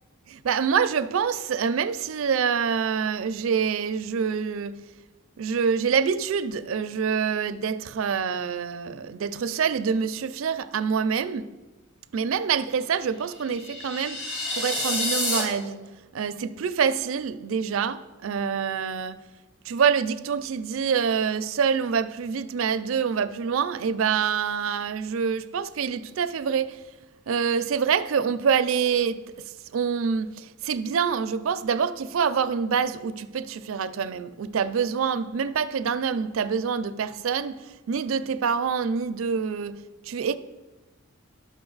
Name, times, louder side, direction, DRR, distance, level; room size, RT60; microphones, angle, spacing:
voice 1, 0.3-4.8 5.4-11.5 12.1-14.3 14.5-15.8 16.1-19.2 19.6-26.8 27.3-40.4, right 6 dB, 70° right, 0.4 m, -26 dB
sound 1, 13.4-15.4, left 1 dB, 55° left, 3.0 m, -28 dB
11.0 x 6.3 x 3.9 m
head